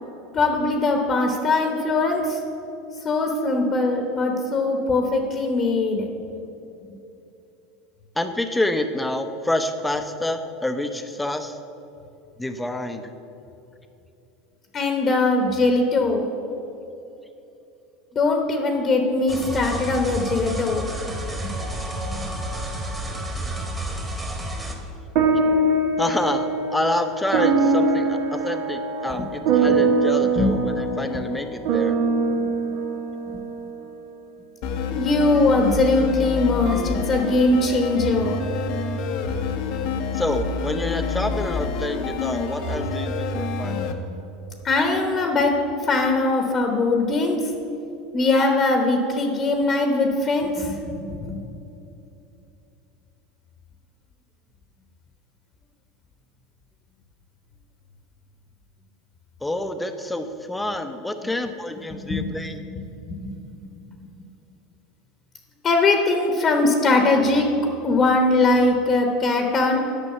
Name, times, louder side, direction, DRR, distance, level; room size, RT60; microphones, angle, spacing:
voice 1, 0.3-2.4 3.0-6.1 6.9-7.0 14.7-16.3 18.1-20.9 22.1-22.2 29.7-29.8 30.4-30.5 32.4-32.5 34.7-38.4 44.6-47.4 48.1-51.4 62.1-62.3 62.7-62.8 63.1-63.4 65.6-67.5 67.8-69.8, left 2 dB, 35° left, 3 dB, 1.0 m, -21 dB
voice 2, 8.2-11.6 12.4-13.1 26.0-26.5 26.7-31.9 40.1-43.8 59.4-62.6, left 1 dB, 10° left, 8 dB, 0.7 m, -27 dB
sound 1, 19.3-24.7, right 1 dB, 15° right, 1.6 m, -30 dB
sound 2, 25.1-33.8, right 3 dB, 65° right, 1.0 m, -22 dB
sound 3, 34.6-43.9, left 4 dB, 65° left, 0.8 m, -27 dB
8.7 x 6.1 x 6.7 m, 2.9 s
hypercardioid pair, 95°, 0 cm